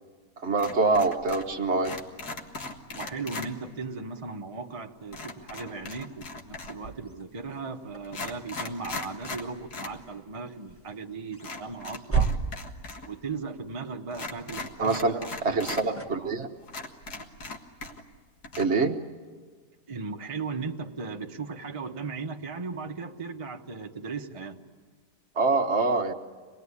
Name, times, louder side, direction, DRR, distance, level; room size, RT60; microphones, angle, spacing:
voice 1, 0.4-1.9 14.8-15.1 15.4-16.5 18.6-19.0 25.4-26.1, right 3 dB, 45° right, 5 dB, 1.3 m, -25 dB
sound 1, 0.6-1.5 1.8-3.5 5.1-6.9 7.6-7.7 8.0-10.0 10.3-10.4 11.4-13.1 13.3-13.4 14.1-15.8 16.3-16.4 16.7-18.2 18.4-18.6, left 3 dB, 70° left, 2.2 m, -39 dB
voice 2, 2.9-12.3 13.0-16.3 19.9-24.6, right 4 dB, 25° right, 2 dB, 0.9 m, -37 dB
sound 2, 6.3-13.9 14.9-16.6, right 5 dB, 10° left, 1.4 m, -36 dB
26.0 x 20.0 x 9.8 m, 1.5 s
omnidirectional pair, 1.8 m